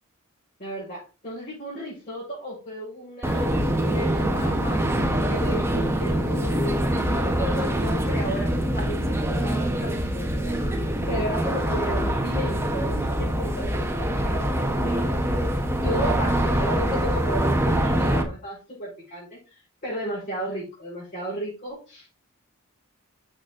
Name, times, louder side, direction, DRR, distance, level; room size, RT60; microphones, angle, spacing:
voice 1, 0.6-4.8 5.3-10.6 11.1-15.1 15.8-19.4 19.8-22.1, equal, 40° left, -8 dB, 5.3 m, -34 dB
sound 1, 3.2-18.2, right 1 dB, 10° right, 1.3 m, -24 dB
7.1 x 6.8 x 3.9 m, 0.31 s
head